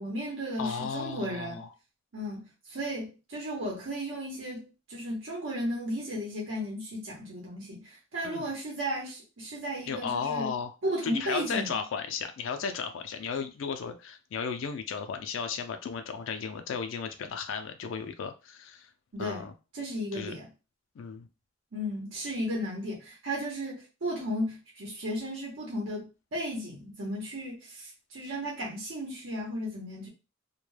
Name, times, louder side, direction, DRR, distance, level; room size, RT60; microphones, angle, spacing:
voice 1, 0.0-1.6 2.1-10.5 10.8-11.8 19.1-19.5 19.7-20.5 21.7-30.1, equal, 90° right, 0.8 m, -35 dB
voice 2, 0.6-1.7 8.2-8.5 9.9-10.7 11.0-18.9 19.2-19.5 20.1-20.3 21.0-21.3, left 6 dB, 80° left, 0.4 m, -35 dB
2.2 x 2.1 x 3.1 m
head